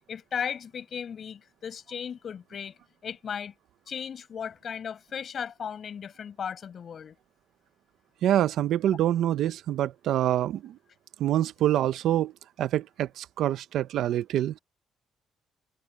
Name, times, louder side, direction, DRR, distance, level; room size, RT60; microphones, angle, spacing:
voice 1, 0.1-3.5 3.9-7.2, left 7 dB, 55° left, 6.1 m, -36 dB
voice 2, 8.2-10.8 11.2-12.3 12.6-14.6, right 12 dB, 80° right, 0.8 m, -26 dB
cardioid pair, 90°, 0 cm